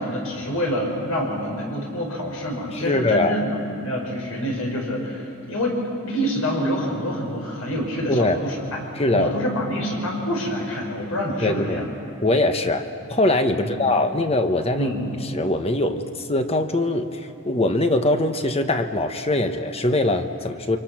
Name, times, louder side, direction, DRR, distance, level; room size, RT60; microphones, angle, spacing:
voice 1, 0.0-8.8 9.1-11.9 13.6-13.8 14.7-15.0, equal, 80° left, 0 dB, 6.2 m, -27 dB
voice 2, 2.8-3.4 8.1-8.4 9.0-9.3 11.4-11.8 12.2-14.9 15.3-20.8, left 2 dB, 30° left, 7 dB, 1.2 m, -22 dB
29.5 x 26.0 x 6.1 m, 3.0 s
head